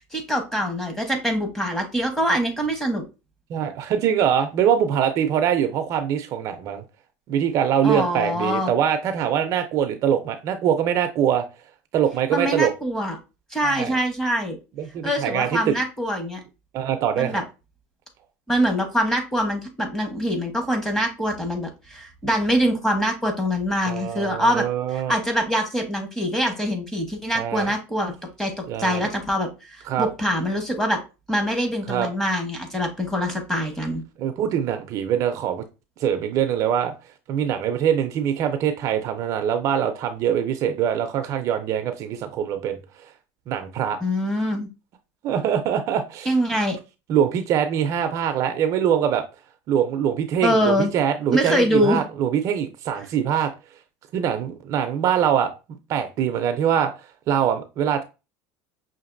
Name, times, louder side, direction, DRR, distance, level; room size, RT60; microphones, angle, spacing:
voice 1, 0.1-3.0 7.8-8.7 12.3-13.2 13.5-14.6 15.0-16.4 17.2-17.4 18.5-24.7 24.9-31.0 31.3-34.0 44.0-44.7 46.2-46.8 50.4-50.9 51.3-52.0, equal, 5° left, 3 dB, 1.1 m, -24 dB
voice 2, 3.5-6.8 7.3-11.4 11.9-12.7 13.6-14.0 14.8-15.8 16.7-17.4 23.9-25.1 27.3-27.7 28.7-29.1 29.9-30.1 31.9-32.1 34.2-35.6 36.0-36.9 37.3-42.8 43.5-44.0 45.2-46.3 47.1-49.2 49.7-53.5 54.1-55.5 55.9-56.9 57.3-58.0, right 9 dB, 50° right, 8 dB, 0.5 m, -23 dB
5.8 x 2.5 x 2.5 m, 0.29 s
supercardioid pair, 120°, 7 cm